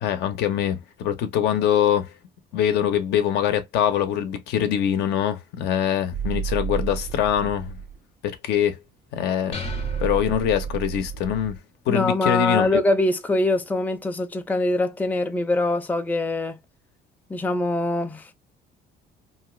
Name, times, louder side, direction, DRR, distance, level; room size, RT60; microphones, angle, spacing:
voice 1, 0.0-2.1 2.5-7.8 8.2-8.8 9.1-9.6 10.0-11.5 11.9-12.7, left 10 dB, 80° left, 0.7 m, -23 dB
sound 1, 6.1-8.0 9.6-11.6, right 7 dB, 50° right, 0.4 m, -31 dB
sound 2, 9.5-11.1, left 5 dB, 35° left, 0.8 m, -38 dB
voice 2, 11.9-16.6 17.3-18.3, left 2 dB, 10° left, 0.5 m, -23 dB
2.7 x 2.4 x 3.0 m
cardioid pair, 110°, 17 cm